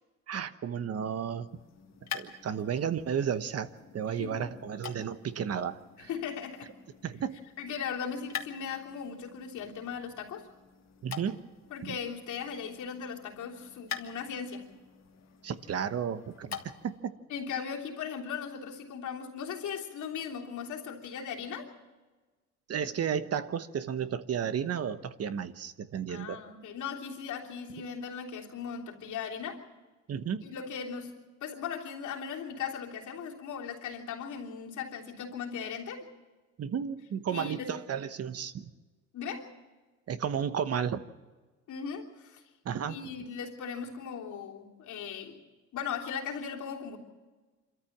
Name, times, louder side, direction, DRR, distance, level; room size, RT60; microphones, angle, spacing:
voice 1, 0.3-1.5 2.1-6.1 7.0-7.4 11.0-11.4 11.8-11.9 15.4-16.6 16.8-17.1 22.7-26.4 30.1-30.5 36.6-38.7 40.1-41.0 42.6-43.0, right 8 dB, 55° right, 12 dB, 1.1 m, -33 dB
sound 1, 1.4-17.0, left 8 dB, 60° left, 1.8 m, -46 dB
voice 2, 4.0-4.5 6.1-6.7 7.6-10.5 11.7-14.7 17.3-21.7 26.1-29.6 30.4-36.1 37.3-37.7 39.1-39.5 41.7-42.4 42.9-45.4 45.7-47.0, left 7 dB, 75° left, -2 dB, 3.3 m, -38 dB
26.0 x 13.5 x 7.3 m, 1.3 s
cardioid pair, 90°, 30 cm